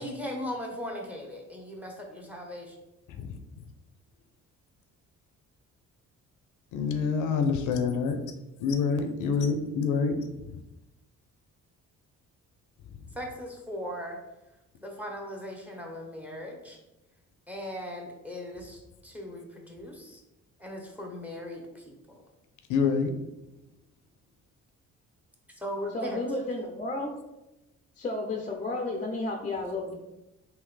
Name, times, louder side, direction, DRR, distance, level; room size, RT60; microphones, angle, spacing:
voice 1, 0.0-2.8 13.1-14.2 14.8-16.8 17.5-20.2 20.6-22.2 25.6-26.2, equal, 5° right, 1 dB, 0.8 m, -38 dB
voice 2, 6.7-8.2 8.6-10.2 22.7-23.1, left 5 dB, 80° left, 7 dB, 0.6 m, -26 dB
voice 3, 25.9-27.1 28.0-29.9, left 2 dB, 25° left, 2 dB, 0.5 m, -32 dB
3.6 x 2.8 x 3.2 m, 0.96 s
cardioid pair, 90°, 30 cm